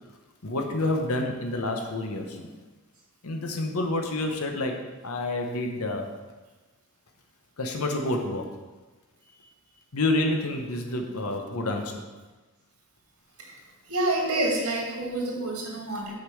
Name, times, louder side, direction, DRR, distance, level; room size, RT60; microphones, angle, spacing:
voice 1, 0.4-2.5 3.2-4.7 5.0-6.1 7.6-8.5 9.9-12.0, left 2 dB, 75° left, 3 dB, 1.0 m, -28 dB
voice 2, 13.9-16.2, right 2 dB, 75° right, -1 dB, 2.2 m, -28 dB
6.6 x 5.2 x 6.4 m, 1.2 s
head